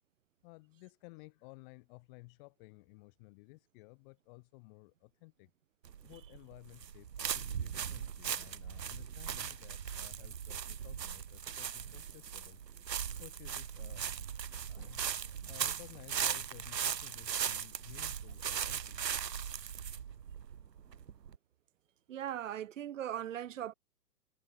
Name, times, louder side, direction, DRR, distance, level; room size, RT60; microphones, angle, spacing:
voice 1, 0.4-5.5 6.0-12.6 13.2-14.1 14.7-15.1 15.4-19.0, left 28 dB, 30° left, 5.1 m, -55 dB
sound 1, 5.9-21.4, right 8 dB, 85° right, 0.8 m, -39 dB
voice 2, 22.1-23.7, right 11 dB, 50° right, 1.0 m, -39 dB
figure-of-eight pair, 130°, 49 cm